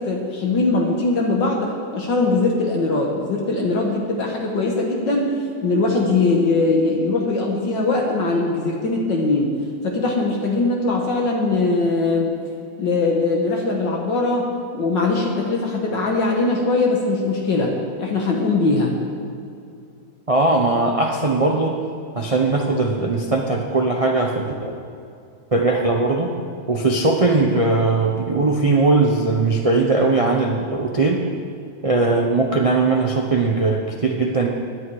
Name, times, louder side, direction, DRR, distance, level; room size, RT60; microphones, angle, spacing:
voice 1, 0.0-5.3 5.6-9.5 9.8-12.3 12.8-14.5 14.7-19.0, left 3 dB, 65° left, 0 dB, 2.0 m, -21 dB
voice 2, 20.3-21.8 22.1-24.7 25.5-26.3 26.7-31.2 31.8-34.5, right 3 dB, 40° right, 1 dB, 0.5 m, -19 dB
18.5 x 11.0 x 4.8 m, 2.5 s
omnidirectional pair, 2.2 m